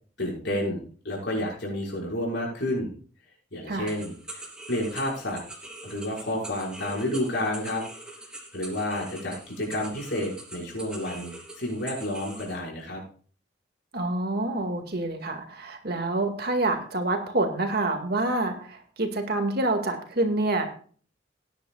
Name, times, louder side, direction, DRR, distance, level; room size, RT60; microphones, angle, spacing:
voice 1, 0.2-2.9 3.5-4.4 4.7-5.4 5.8-7.8 8.5-13.0, left 1 dB, 60° left, -2 dB, 5.7 m, -30 dB
voice 2, 3.7-4.0 13.9-20.7, right 2 dB, 55° right, 5 dB, 2.0 m, -27 dB
sound 1, 3.9-12.6, right 1 dB, 5° right, 3.0 m, -43 dB
18.0 x 10.5 x 2.4 m, 0.43 s
head